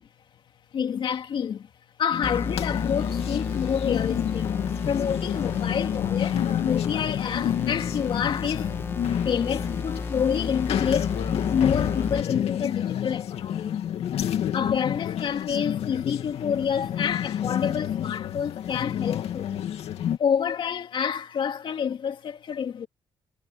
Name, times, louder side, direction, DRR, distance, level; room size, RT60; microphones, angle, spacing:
voice 1, 0.7-1.7 2.0-4.5 4.8-8.7 9.2-13.8 14.5-19.6 20.2-22.9, left 7 dB, 55° left, 3.1 m, -28 dB
sound 1, 2.1-20.2, left 10 dB, 80° left, 2.4 m, -29 dB
sound 2, 2.2-12.2, left 4 dB, 25° left, 1.6 m, -33 dB
cardioid pair, 150°, 10 cm